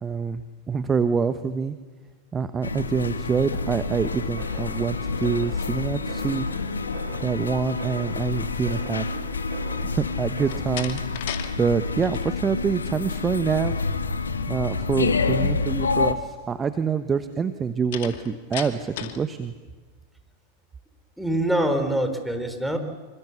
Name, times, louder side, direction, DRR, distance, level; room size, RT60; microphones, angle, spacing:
voice 1, 0.0-1.7 2.3-6.5 7.2-9.0 9.8-11.0 11.6-13.7 14.5-19.5, right 6 dB, 20° right, 10 dB, 1.1 m, -26 dB
sound 1, 2.6-16.1, left 4 dB, 75° left, 1.5 m, -28 dB
sound 2, 3.7-10.6, right 6 dB, 60° right, 4.9 m, -43 dB
Slam, 10.4-11.5 11.8-12.3 17.9-19.3, left 11 dB, 50° left, 2.4 m, -35 dB
voice 2, 21.2-22.8, right 1 dB, ahead, 6 dB, 4.1 m, -24 dB
26.5 x 25.5 x 7.1 m, 1.3 s
figure-of-eight pair, 90°, 0 cm